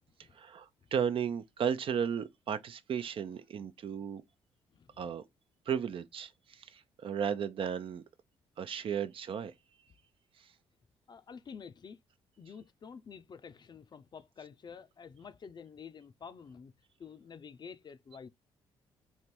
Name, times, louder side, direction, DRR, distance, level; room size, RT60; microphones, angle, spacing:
voice 1, 0.3-4.2 5.0-5.2 5.7-8.0 8.6-9.5, right 8 dB, 55° right, 0.5 m, -34 dB
voice 2, 11.1-12.0 12.4-16.7 17.0-18.3, left 6 dB, 40° left, 0.6 m, -49 dB
3.3 x 2.9 x 4.4 m
supercardioid pair, 65°, 11 cm